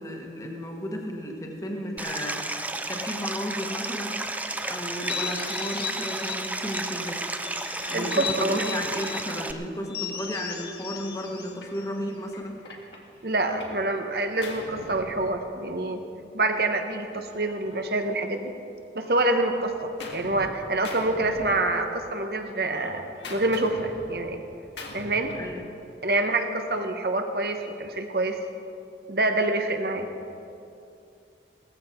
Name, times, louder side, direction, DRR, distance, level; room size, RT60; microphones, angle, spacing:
voice 1, 0.0-4.3 4.6-7.2 7.9-12.6 25.3-25.6, equal, 20° left, 1 dB, 1.5 m, -34 dB
Stream, 2.0-9.5, right 2 dB, 10° right, 0.4 m, -32 dB
sound 1, 4.9-7.0 7.4-9.3 9.9-12.4, left 7 dB, 60° left, 1.6 m, -37 dB
voice 2, 7.9-8.6 13.2-16.0 16.3-18.5 18.9-23.0 23.3-24.4 24.9-25.3 26.0-28.4 29.1-30.1, right 2 dB, 60° right, 5 dB, 1.2 m, -26 dB
Gunshot gunfire, 11.6-11.8 12.3-13.8 14.1-15.8 16.8-18.6 19.0-20.5 20.8-22.1 22.4-25.6, left 2 dB, 85° left, 2.0 m, -43 dB
17.5 x 14.5 x 4.5 m, 2.6 s
head